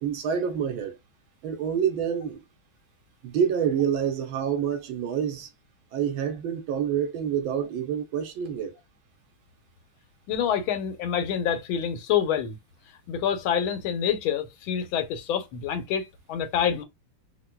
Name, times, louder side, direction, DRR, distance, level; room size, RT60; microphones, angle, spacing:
voice 1, 0.0-1.0 1.4-2.4 3.2-5.5 5.9-8.8, right 8 dB, 80° right, 1.6 m, -27 dB
voice 2, 10.3-12.6 13.1-16.8, left 8 dB, 85° left, 1.6 m, -27 dB
4.5 x 2.2 x 2.2 m
omnidirectional pair, 2.2 m